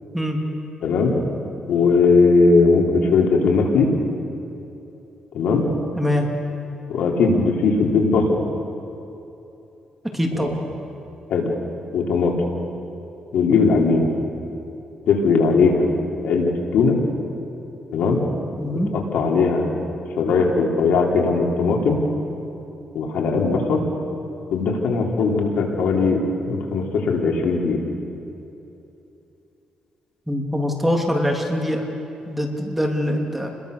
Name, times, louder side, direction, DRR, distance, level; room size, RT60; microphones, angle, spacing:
voice 1, 0.8-1.2 1.7-3.9 5.3-5.7 6.9-8.4 10.4-10.5 11.3-11.5 11.9-12.3 13.3-14.1 15.1-15.9 16.2-17.0 17.9-18.2 18.9-19.7 20.2-22.0 22.9-23.8 24.5-27.8, left 4 dB, 85° left, 0 dB, 3.7 m, -19 dB
voice 2, 6.0-6.3 10.1-10.6 18.6-18.9 30.3-31.9 32.3-33.5, left 1 dB, 5° right, 1 dB, 3.0 m, -23 dB
29.5 x 21.5 x 6.8 m, 2.9 s
cardioid pair, 110°, 2 cm